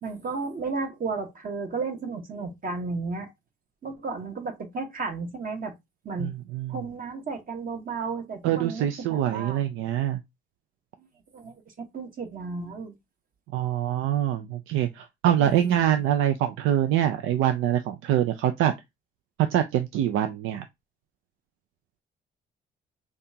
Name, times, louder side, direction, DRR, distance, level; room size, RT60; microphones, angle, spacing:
voice 1, 0.0-3.3 3.8-5.7 6.0-6.3 6.7-9.6 11.0-11.1 11.3-12.9 15.4-15.9, right 4 dB, 45° right, 1.2 m, -33 dB
voice 2, 6.2-6.8 8.4-10.2 13.5-18.7 19.5-20.6, right 11 dB, 90° right, 0.4 m, -24 dB
5.3 x 2.4 x 2.7 m
cardioid pair, 90°, 20 cm